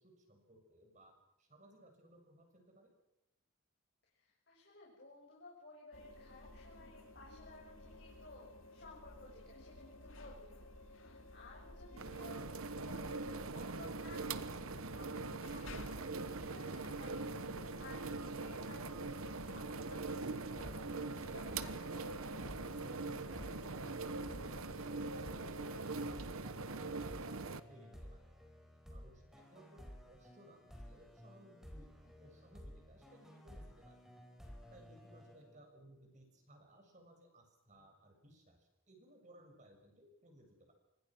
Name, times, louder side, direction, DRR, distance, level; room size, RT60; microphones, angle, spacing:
voice 1, 0.0-2.9 24.2-28.3 28.9-31.9 32.2-34.0 34.7-40.7, right 1 dB, 35° right, 3 dB, 6.9 m, -62 dB
voice 2, 4.1-22.1 32.2-32.3, left 3 dB, 50° left, -3 dB, 6.7 m, -57 dB
sound 1, 5.9-25.8, left 1 dB, 65° left, 2.6 m, -54 dB
sound 2, 12.0-27.6, right 3 dB, 75° right, 1.2 m, -42 dB
sound 3, 20.6-36.0, equal, ahead, 4.6 m, -55 dB
28.0 x 25.5 x 6.3 m, 0.87 s
head